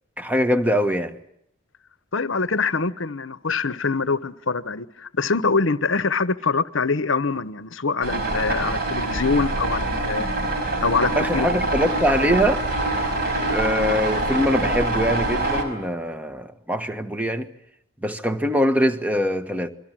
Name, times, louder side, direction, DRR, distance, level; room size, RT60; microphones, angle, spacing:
voice 1, 0.2-1.1 11.2-12.7 13.5-17.5 18.0-19.7, equal, 5° right, 1.3 m, -23 dB
voice 2, 2.1-10.3 10.8-11.7, left 4 dB, 60° left, 1.0 m, -24 dB
sound 1, 8.0-15.6, right 2 dB, 45° right, 5.2 m, -25 dB
29.0 x 22.5 x 7.6 m
head